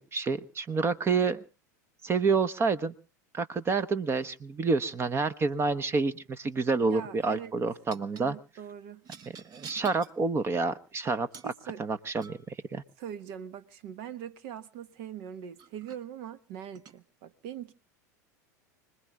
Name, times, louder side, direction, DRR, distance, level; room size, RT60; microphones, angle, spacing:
voice 1, 0.0-1.4 2.0-2.9 3.3-8.4 9.5-11.5 11.8-12.8, right 4 dB, 25° right, 0.9 m, -28 dB
sound 1, 6.0-6.3 7.9-8.3 9.0-10.2 11.3-11.6 12.2-12.5 14.9-15.0 15.6-16.0 16.7-17.0, right 6 dB, 40° right, 1.1 m, -48 dB
voice 2, 6.8-7.5 8.1-9.0 11.4-11.8 13.0-17.7, right 9 dB, 60° right, 1.2 m, -42 dB
29.5 x 20.5 x 2.4 m
hypercardioid pair, 90°, 10 cm